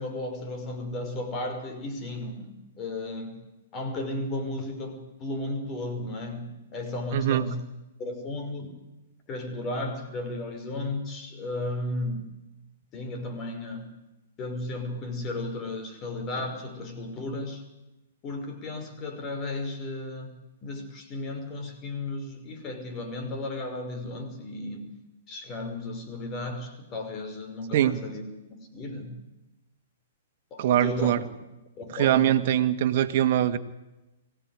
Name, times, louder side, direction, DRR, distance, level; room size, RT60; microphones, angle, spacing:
voice 1, 0.0-3.4 3.7-7.6 8.0-8.8 9.3-12.3 12.9-13.9 14.4-17.6 18.2-20.3 20.6-24.9 25.3-28.2 28.5-29.2 30.5-31.1 31.8-32.4, left 2 dB, 30° left, 6 dB, 5.5 m, -34 dB
voice 2, 7.1-7.5 27.7-28.0 30.6-31.2 31.9-33.6, right 11 dB, 55° right, 8 dB, 1.9 m, -23 dB
24.0 x 17.0 x 9.8 m, 1.0 s
hypercardioid pair, 120°, 0 cm